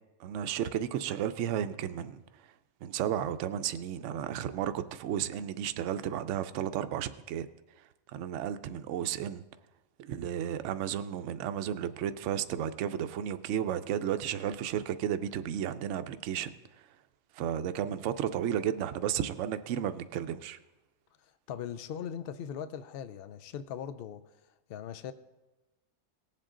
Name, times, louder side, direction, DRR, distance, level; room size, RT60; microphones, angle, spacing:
voice 1, 0.2-2.2 2.8-7.5 8.1-9.4 10.0-16.5 17.3-20.6, right 10 dB, 65° right, 0.8 m, -33 dB
voice 2, 21.2-24.2 24.7-25.1, left 8 dB, 85° left, 0.5 m, -40 dB
18.5 x 7.6 x 3.7 m
omnidirectional pair, 1.6 m